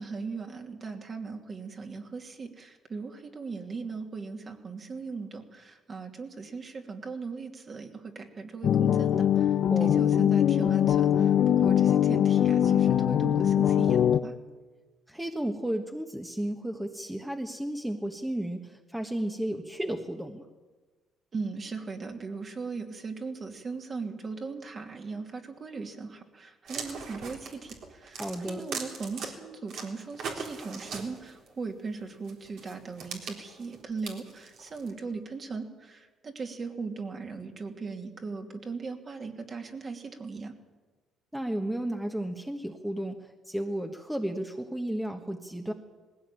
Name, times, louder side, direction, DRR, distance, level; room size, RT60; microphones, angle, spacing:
voice 1, 0.0-14.3 21.3-40.5, right 4 dB, 40° right, 3 dB, 2.7 m, -39 dB
sound 1, 8.6-14.2, left 10 dB, 60° left, 0.8 m, -22 dB
voice 2, 9.7-10.1 15.1-20.4 28.2-28.6 41.3-45.7, right 1 dB, 5° right, 4 dB, 1.4 m, -33 dB
sound 2, 26.7-29.3 29.7-31.5 32.3-34.9, right 5 dB, 70° right, 3.9 m, -39 dB
20.0 x 16.5 x 9.1 m, 1.3 s
cardioid pair, 100°, 0 cm